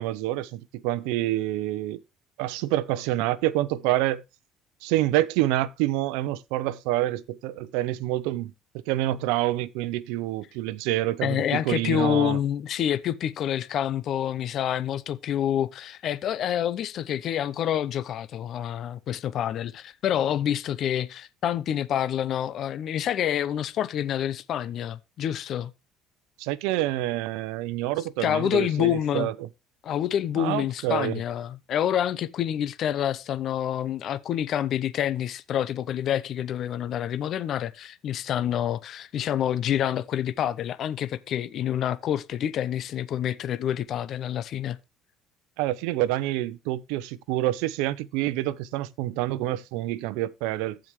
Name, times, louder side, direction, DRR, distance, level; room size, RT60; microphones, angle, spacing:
voice 1, 0.0-2.0 2.4-4.2 4.8-8.5 8.9-12.4 26.4-29.5 30.3-31.2 45.6-50.8, right 15 dB, 85° right, 0.6 m, -27 dB
voice 2, 11.2-25.7 28.2-29.3 29.8-44.8, left 10 dB, 55° left, 0.8 m, -27 dB
15.0 x 5.0 x 3.2 m
supercardioid pair, 95°, 0 cm